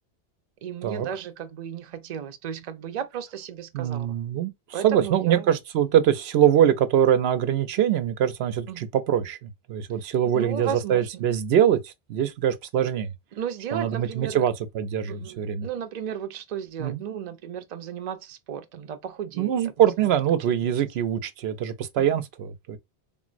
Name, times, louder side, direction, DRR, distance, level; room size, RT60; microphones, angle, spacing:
voice 1, 0.6-4.1 4.7-5.5 8.7-8.8 10.3-11.2 13.3-14.5 15.1-19.5 20.6-20.8 22.0-22.2, right 8 dB, 50° right, 0.6 m, -34 dB
voice 2, 3.7-4.5 4.8-13.1 13.7-15.7 16.8-17.0 19.4-22.8, right 10 dB, 85° right, 0.8 m, -23 dB
3.8 x 2.0 x 2.4 m
omnidirectional pair, 1.0 m